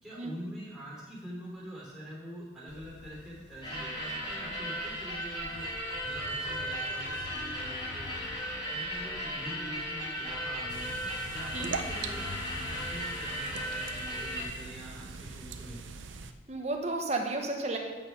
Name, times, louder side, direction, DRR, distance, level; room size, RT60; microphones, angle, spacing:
voice 1, 0.0-5.7 6.0-8.1 8.7-11.0 11.3-15.9, equal, 5° right, -6 dB, 3.2 m, -45 dB
sound 1, 2.7-13.5, left 3 dB, 60° left, 0.5 m, -48 dB
sound 2, 3.6-14.4, equal, 25° left, 3.1 m, -36 dB
sound 3, 10.7-16.3, right 5 dB, 75° right, 0.6 m, -42 dB
voice 2, 16.5-17.8, right 2 dB, 35° right, 2 dB, 1.1 m, -32 dB
9.0 x 6.4 x 5.4 m, 1.3 s
head